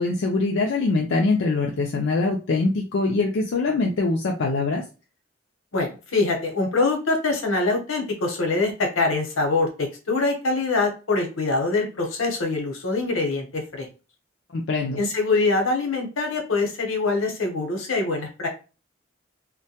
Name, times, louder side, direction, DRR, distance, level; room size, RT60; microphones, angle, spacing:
voice 1, 0.0-4.8 14.5-15.0, left 3 dB, 65° left, 0 dB, 0.4 m, -23 dB
voice 2, 5.7-13.9 15.0-18.5, left 3 dB, 85° left, 3 dB, 0.8 m, -24 dB
2.2 x 2.1 x 2.7 m, 0.32 s
head